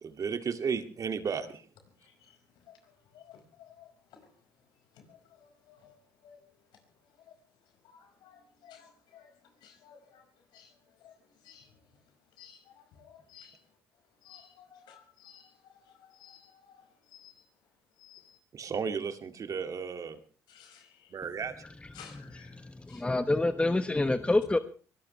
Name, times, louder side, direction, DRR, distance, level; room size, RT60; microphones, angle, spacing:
voice 1, 0.0-1.7 18.5-20.2 21.1-21.5, right 6 dB, 45° right, 2.2 m, -34 dB
voice 2, 2.0-2.4 2.6-4.2 4.9-6.0 6.2-6.4 7.8-9.3 9.6-10.3 10.5-11.1 11.4-11.7 12.4-13.6 14.2-17.4 18.0-18.4 20.5-21.1 21.9-22.6 22.9-23.0, left 8 dB, 70° left, 5.2 m, -56 dB
voice 3, 22.5-24.6, left 2 dB, 15° left, 1.2 m, -27 dB
23.5 x 18.0 x 3.2 m
supercardioid pair, 65°, 8 cm